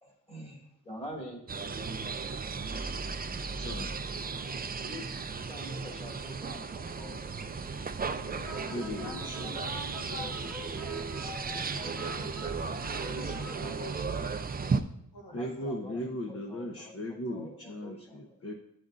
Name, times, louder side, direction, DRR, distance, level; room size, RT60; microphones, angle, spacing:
voice 1, 0.0-1.5 4.7-5.0 5.5-7.8 8.4-8.9 10.7-10.8 13.1-14.1 15.3-18.4, equal, 15° left, -2 dB, 1.9 m, -47 dB
sound 1, 1.5-14.8, right 4 dB, 25° right, 0.4 m, -35 dB
voice 2, 3.3-3.9 8.7-9.4 15.3-18.5, left 1 dB, 40° left, 2 dB, 0.8 m, -38 dB
voice 3, 4.3-5.2 5.4-5.7 8.2-10.9 11.7-14.0 14.6-14.8 15.1-15.3, left 2 dB, 75° left, 0 dB, 1.4 m, -48 dB
sound 2, 8.4-13.5, left 1 dB, ahead, 1.4 m, -46 dB
12.0 x 5.2 x 2.5 m, 0.75 s
wide cardioid pair, 85°, 35 cm